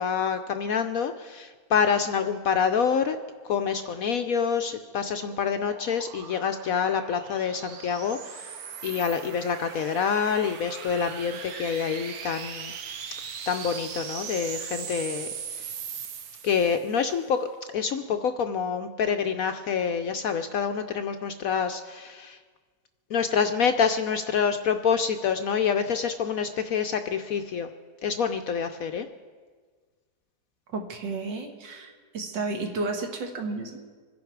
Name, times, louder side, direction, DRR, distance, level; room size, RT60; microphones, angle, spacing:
voice 1, 0.0-3.2 3.4-8.5 8.8-12.7 13.5-15.3 15.6-15.7 16.4-17.5 17.7-22.4 23.1-27.7 28.0-29.1, left 6 dB, 70° left, 7 dB, 0.9 m, -27 dB
sound 1, 4.3-17.0, right 7 dB, 60° right, 1.3 m, -40 dB
voice 2, 30.7-33.8, right 3 dB, 80° right, 3 dB, 2.3 m, -32 dB
25.0 x 10.5 x 4.6 m, 1.5 s
omnidirectional pair, 1.9 m